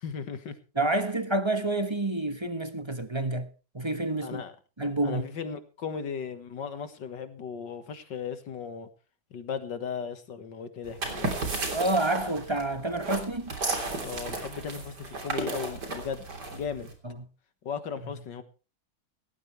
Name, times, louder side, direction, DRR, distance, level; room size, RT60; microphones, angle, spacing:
voice 1, 0.0-0.6 4.2-4.5 5.0-8.9 9.3-11.3 14.0-16.9 17.6-18.4, left 6 dB, 75° left, 2.3 m, -36 dB
voice 2, 0.7-3.5 3.7-4.4 4.8-5.2 11.7-13.5 17.0-17.3, right 2 dB, 15° right, 1.2 m, -28 dB
sound 1, 10.8-16.9, right 3 dB, 65° right, 3.9 m, -34 dB
17.5 x 14.0 x 3.3 m
omnidirectional pair, 2.0 m